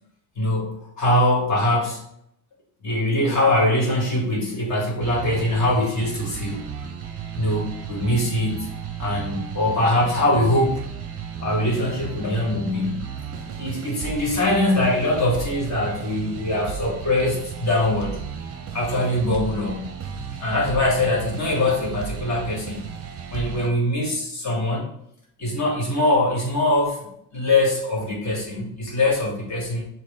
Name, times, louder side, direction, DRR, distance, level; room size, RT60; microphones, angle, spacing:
voice 1, 0.3-2.0 2.8-6.6 7.3-8.7 9.0-10.8 11.4-13.1 13.6-18.2 18.7-19.9 20.4-22.9 23.3-24.9 25.4-29.8, left 1 dB, 40° left, -3 dB, 1.7 m, -22 dB
sound 1, 5.0-23.7, right 7 dB, 35° right, 0.6 m, -34 dB
6.2 x 2.2 x 3.6 m, 0.75 s
cardioid pair, 130°, 42 cm